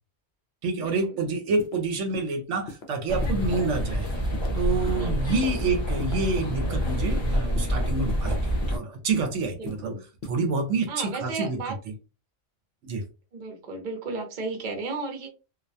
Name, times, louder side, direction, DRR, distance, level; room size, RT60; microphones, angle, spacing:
voice 1, 0.6-4.1 4.5-9.9 10.3-11.6 12.8-13.0, right 3 dB, 75° right, 0.9 m, -28 dB
sound 1, 1.6-1.7 2.1-2.3 2.7-2.8 3.2-3.4 3.8-4.0 4.3-4.5 4.9-5.0 5.4-5.6 6.0-6.7 7.0-7.2 7.6-7.7 8.1-8.2 8.6-8.8 9.1-9.3 9.7-9.8 10.2-10.4, left 3 dB, 65° left, 0.8 m, -39 dB
sound 2, 3.1-8.8, equal, 30° left, 0.6 m, -27 dB
voice 2, 4.9-5.6 9.6-10.0 10.9-11.8 13.3-15.3, right 3 dB, 45° right, 0.7 m, -34 dB
2.3 x 2.1 x 2.6 m
omnidirectional pair, 1.3 m